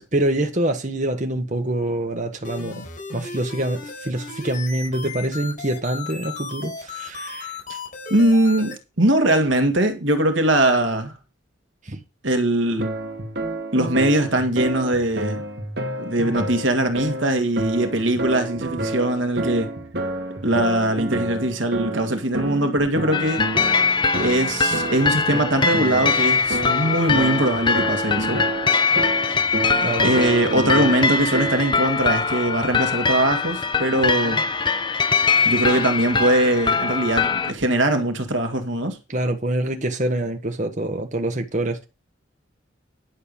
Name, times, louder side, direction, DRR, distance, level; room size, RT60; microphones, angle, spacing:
voice 1, 0.1-2.8 3.1-7.6 11.8-12.0 29.8-30.3 33.9-34.4 35.3-35.5 39.1-41.8, right 1 dB, 40° right, 1.6 m, -26 dB
sound 1, 2.4-8.7, left 4 dB, 45° left, 4.8 m, -35 dB
voice 2, 8.1-11.1 12.2-12.9 13.7-15.4 16.0-19.7 20.4-23.4 24.2-28.4 30.0-34.4 35.4-39.0, right 1 dB, 75° right, 2.0 m, -21 dB
sound 2, 12.8-31.9, right 2 dB, 55° right, 2.3 m, -29 dB
sound 3, 23.1-37.5, left 5 dB, 25° left, 0.7 m, -22 dB
11.0 x 6.8 x 5.4 m
head